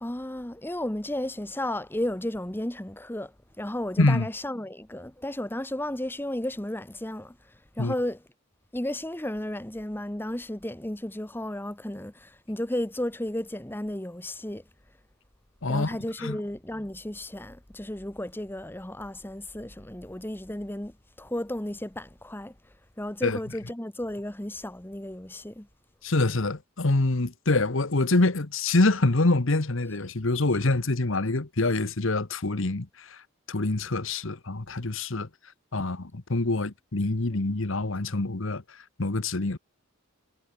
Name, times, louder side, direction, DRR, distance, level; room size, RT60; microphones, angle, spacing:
voice 1, 0.0-8.2 8.7-14.6 15.7-22.5 23.0-25.7 37.3-37.4, left 1 dB, 10° left, 1.0 m, -33 dB
voice 2, 26.0-33.2 33.5-35.3 35.7-38.6 39.0-39.6, left 2 dB, 65° left, 1.2 m, -25 dB
head